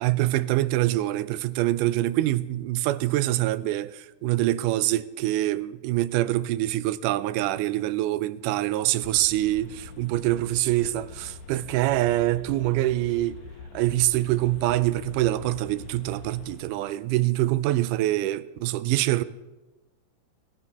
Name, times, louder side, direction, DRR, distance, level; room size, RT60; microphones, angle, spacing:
voice 1, 0.0-13.4 13.7-19.2, right 15 dB, 80° right, 2.0 m, -25 dB
sound 1, 9.0-16.7, left 5 dB, 90° left, 2.6 m, -44 dB
20.5 x 13.5 x 3.0 m
omnidirectional pair, 3.9 m